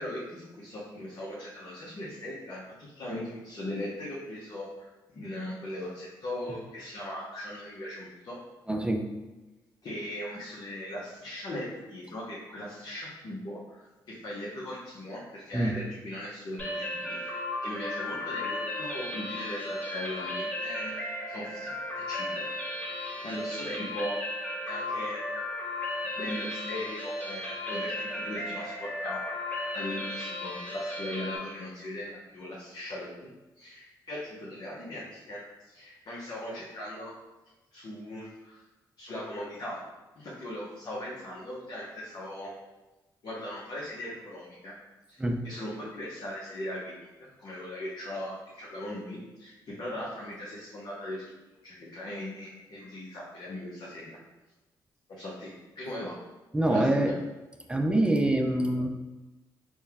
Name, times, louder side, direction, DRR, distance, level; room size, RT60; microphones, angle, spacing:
voice 1, 0.0-8.4 9.8-20.9 21.3-21.7 22.1-22.5 22.8-24.2 24.6-25.2 26.1-29.2 29.7-33.2 33.6-37.1 37.7-38.6 39.0-39.8 40.2-42.5 43.2-44.7 45.1-51.2 51.6-54.2 55.1-55.5 55.8-56.1 56.7-57.1, left 1 dB, 55° left, -7 dB, 0.9 m, -39 dB
voice 2, 8.7-9.1 15.5-15.8 45.2-45.4 56.5-57.1 57.7-58.9, right 1 dB, 10° right, 4 dB, 0.4 m, -25 dB
sound 1, 16.6-31.4, left 1 dB, 15° left, 1.1 m, -35 dB
4.2 x 2.3 x 3.4 m, 1.1 s
supercardioid pair, 60°, 9 cm